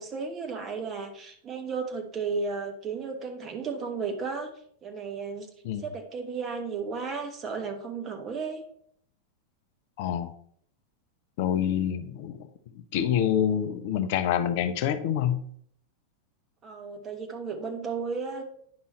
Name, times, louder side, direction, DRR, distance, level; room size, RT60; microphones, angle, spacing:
voice 1, 0.0-4.5 4.8-5.5 5.8-8.6 16.6-18.4, right 5 dB, 25° right, 4 dB, 1.3 m, -34 dB
voice 2, 10.0-10.3 11.4-12.5 12.9-15.4, left 9 dB, 50° left, 11 dB, 0.5 m, -26 dB
9.5 x 5.4 x 3.1 m, 0.64 s
figure-of-eight pair, 90°, 0 cm